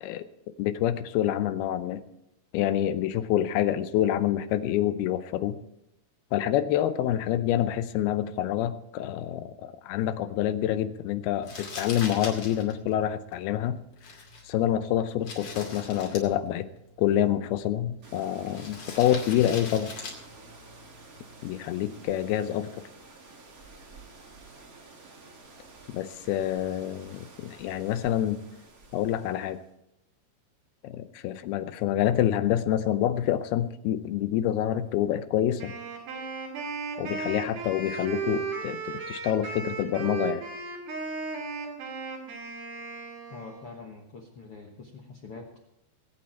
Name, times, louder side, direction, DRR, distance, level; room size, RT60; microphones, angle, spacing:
voice 1, 0.6-2.0 2.5-5.6 6.3-13.8 14.5-16.6 17.0-19.9 21.4-22.7 25.9-28.4 28.9-29.6 30.8-35.7 37.0-40.4, left 11 dB, 85° left, 12 dB, 2.7 m, -27 dB
Crumpling crinkling, 11.4-21.6, left 3 dB, 50° left, 3.6 m, -43 dB
sound 1, 18.0-29.7, right 3 dB, 40° right, 1.2 m, -51 dB
Wind instrument woodwind instrument, 35.6-43.8, right 4 dB, 80° right, 4.6 m, -35 dB
voice 2, 43.3-45.6, left 4 dB, 65° left, 2 dB, 1.4 m, -44 dB
21.0 x 8.8 x 4.4 m, 0.85 s
omnidirectional pair, 4.4 m